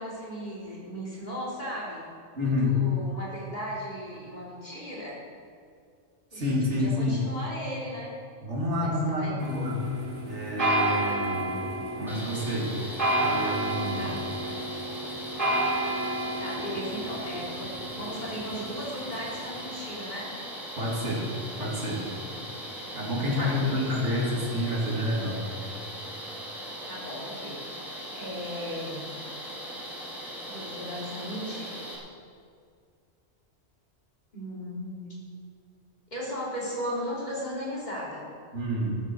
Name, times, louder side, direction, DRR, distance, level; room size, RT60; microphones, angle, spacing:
voice 1, 0.0-2.1 2.4-5.2 6.3-8.2 8.8-9.7 14.0-14.2 14.4-14.7 16.4-20.3 23.3-23.9 26.9-29.0 30.5-31.8 34.3-35.3 36.1-38.3, equal, 40° left, -6 dB, 3.6 m, -37 dB
voice 2, 2.4-2.8 6.3-7.2 8.4-9.8 10.2-11.7 12.0-12.8 13.2-14.1 20.8-21.3 21.6-22.1 22.9-25.4 38.5-38.9, left 1 dB, 75° right, -4 dB, 3.0 m, -28 dB
sound 1, 9.4-19.6, right 1 dB, 50° right, 4.4 m, -31 dB
sound 2, 12.1-32.0, equal, ahead, 2.9 m, -39 dB
14.5 x 12.5 x 4.6 m, 2.2 s
omnidirectional pair, 1.2 m